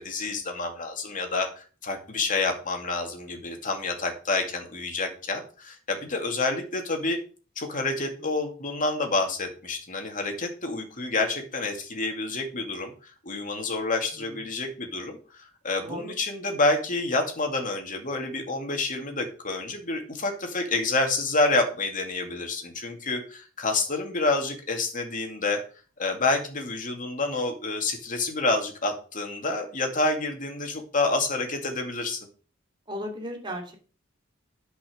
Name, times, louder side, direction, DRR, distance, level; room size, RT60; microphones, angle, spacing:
voice 1, 0.0-7.2 7.6-12.9 13.2-25.6 26.0-32.3, left 3 dB, 40° left, 4 dB, 2.4 m, -28 dB
voice 2, 15.8-16.1 32.9-33.8, equal, 25° right, 2 dB, 3.0 m, -35 dB
10.0 x 5.8 x 6.7 m, 0.38 s
head